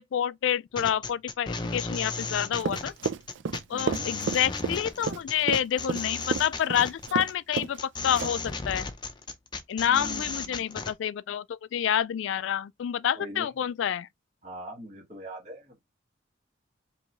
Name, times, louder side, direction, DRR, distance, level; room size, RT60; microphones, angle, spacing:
voice 1, 0.0-2.9 3.7-8.9 9.7-14.1, left 9 dB, 85° left, 0.3 m, -28 dB
sound 1, 0.8-10.9, left 4 dB, 25° left, 0.5 m, -35 dB
Run, 2.6-7.3 7.6-7.8 8.2-8.5, right 5 dB, 75° right, 0.5 m, -31 dB
voice 2, 3.7-4.1 9.8-10.7 13.1-13.5 14.4-15.8, right 1 dB, 40° right, 1.4 m, -41 dB
4.6 x 3.0 x 2.6 m
head